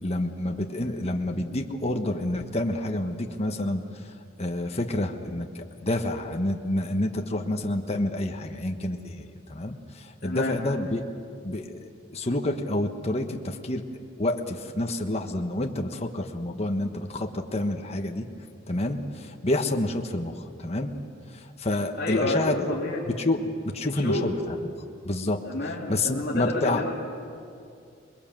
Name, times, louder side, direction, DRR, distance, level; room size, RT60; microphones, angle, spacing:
voice 1, 0.0-3.8 4.4-11.0 11.4-13.8 14.2-18.3 18.7-21.0 21.3-22.6 23.1-24.7 25.0-25.4 25.9-26.8, left 1 dB, 30° left, 3 dB, 1.3 m, -28 dB
voice 2, 10.2-10.5 22.0-23.0 23.9-24.3 25.4-26.9, left 1 dB, 55° left, -6 dB, 3.2 m, -29 dB
27.5 x 21.0 x 7.6 m, 2.4 s
head